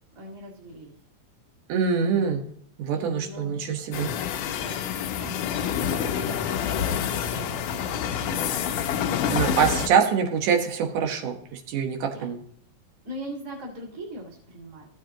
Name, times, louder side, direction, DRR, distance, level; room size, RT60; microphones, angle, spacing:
voice 1, 0.1-0.9 2.0-2.4 2.9-3.5 4.6-8.4 9.2-9.6 12.1-12.3 13.0-15.0, equal, 30° right, -5 dB, 2.3 m, -41 dB
voice 2, 1.7-2.4 2.8-4.1 9.3-12.4, right 6 dB, 85° right, 4 dB, 2.8 m, -24 dB
sound 1, 3.9-9.9, left 8 dB, 75° left, 1.8 m, -27 dB
14.5 x 7.3 x 2.9 m, 0.65 s
omnidirectional pair, 3.5 m